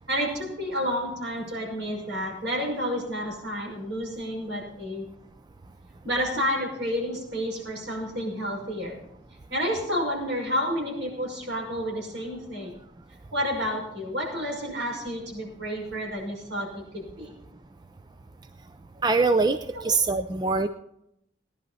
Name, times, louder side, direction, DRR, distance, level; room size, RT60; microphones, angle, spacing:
voice 1, 0.1-5.0 6.0-9.0 9.5-12.8 13.3-17.3 19.7-20.0, equal, 75° right, -1 dB, 6.0 m, -30 dB
voice 2, 19.0-19.6 19.8-20.7, right 3 dB, 20° right, 10 dB, 0.4 m, -22 dB
18.5 x 11.0 x 4.2 m, 0.78 s
head